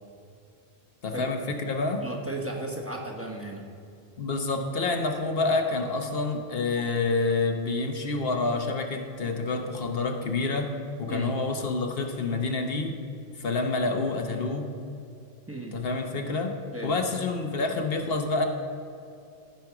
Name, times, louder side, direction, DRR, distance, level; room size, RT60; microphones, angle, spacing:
voice 1, 1.0-2.0 4.2-10.7 11.0-13.0 13.4-14.7 15.7-16.6 16.8-18.5, left 3 dB, 70° left, 4 dB, 1.1 m, -28 dB
voice 2, 2.0-3.6 11.1-11.3 15.5-15.8 16.7-16.9, right 2 dB, 15° right, -1 dB, 1.3 m, -35 dB
15.0 x 5.3 x 5.9 m, 2.6 s
omnidirectional pair, 1.0 m